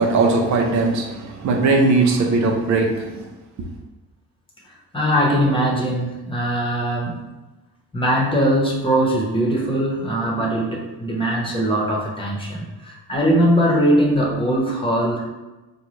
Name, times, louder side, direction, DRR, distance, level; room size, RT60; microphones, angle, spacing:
voice 1, 0.0-3.2, right 3 dB, 65° right, 1 dB, 0.6 m, -19 dB
voice 2, 4.9-7.3 7.9-15.3, equal, 15° left, -3 dB, 0.9 m, -20 dB
3.8 x 2.3 x 3.1 m, 1.1 s
cardioid pair, 90°, 30 cm